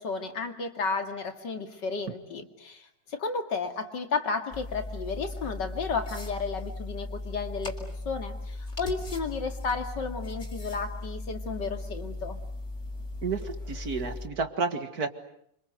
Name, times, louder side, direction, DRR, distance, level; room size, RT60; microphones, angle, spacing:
voice 1, 0.0-12.4, left 4 dB, 65° left, 6 dB, 2.9 m, -33 dB
sound 1, 4.5-14.3, left 2 dB, 35° left, 4.3 m, -38 dB
voice 2, 13.2-15.1, right 4 dB, 55° right, 8 dB, 2.4 m, -31 dB
27.5 x 25.5 x 8.0 m, 0.71 s
omnidirectional pair, 2.0 m